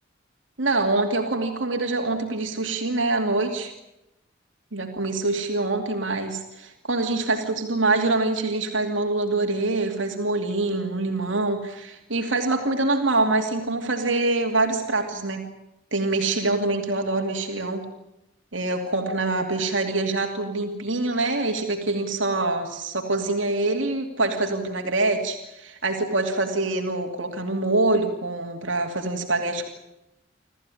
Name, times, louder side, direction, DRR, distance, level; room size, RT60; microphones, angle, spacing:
voice 1, 0.6-3.7 4.7-15.5 15.9-17.9 18.5-29.7, right 2 dB, 80° right, 3 dB, 2.6 m, -25 dB
27.0 x 14.5 x 9.9 m, 0.91 s
head